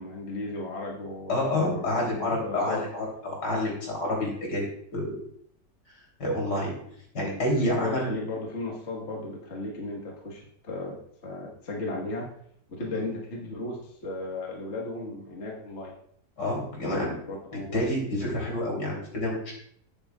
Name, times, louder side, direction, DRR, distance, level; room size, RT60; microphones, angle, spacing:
voice 1, 0.0-2.9 7.6-12.3 12.7-15.9 17.3-17.8, left 2 dB, 40° left, -2 dB, 1.7 m, -35 dB
voice 2, 1.3-5.2 6.2-6.7 7.1-8.1 12.9-13.0 16.4-17.1 17.7-19.5, left 1 dB, 70° left, -2 dB, 3.9 m, -28 dB
12.0 x 9.6 x 2.4 m, 0.65 s
omnidirectional pair, 1.9 m